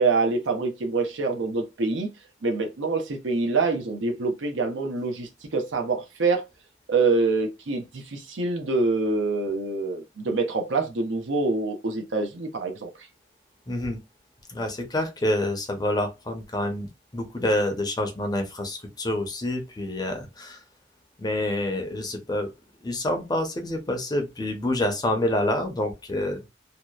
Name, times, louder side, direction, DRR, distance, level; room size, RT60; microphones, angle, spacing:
voice 1, 0.0-2.1 2.4-6.4 6.9-12.9, right 3 dB, 85° right, 0.7 m, -25 dB
voice 2, 13.7-14.0 14.5-20.6 21.2-22.5 22.8-26.4, left 1 dB, 20° left, 0.6 m, -27 dB
2.7 x 2.0 x 2.3 m
head